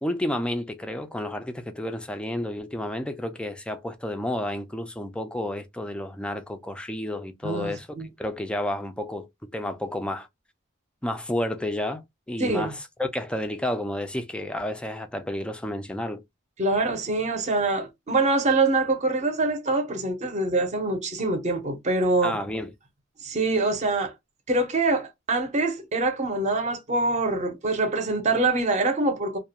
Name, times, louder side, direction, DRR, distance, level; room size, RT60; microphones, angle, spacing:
voice 1, 0.0-7.9 8.2-9.3 9.5-10.3 11.0-16.2 22.2-22.7, left 1 dB, 5° left, 0.3 m, -31 dB
voice 2, 7.4-8.1 12.4-12.7 16.6-22.4 23.2-24.1 24.5-29.4, right 2 dB, 35° right, 0.6 m, -24 dB
2.3 x 2.1 x 2.7 m
head